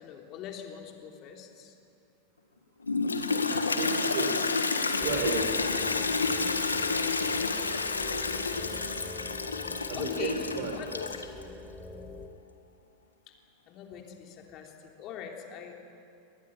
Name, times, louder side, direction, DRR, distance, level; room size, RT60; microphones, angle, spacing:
voice 1, 0.0-1.7 3.4-3.9 6.9-8.8 9.9-10.5 10.8-11.4 13.7-15.7, left 8 dB, 45° left, 2 dB, 3.5 m, -43 dB
Toilet flush, 2.8-11.4, left 4 dB, 85° left, 1.5 m, -30 dB
voice 2, 3.3-4.3 5.0-5.9 9.9-10.8, right 5 dB, 55° right, 5 dB, 5.4 m, -34 dB
sound 1, 5.0-12.3, left 3 dB, 15° left, 2.2 m, -43 dB
25.0 x 19.5 x 9.2 m, 2.5 s
figure-of-eight pair, 90°, 0 cm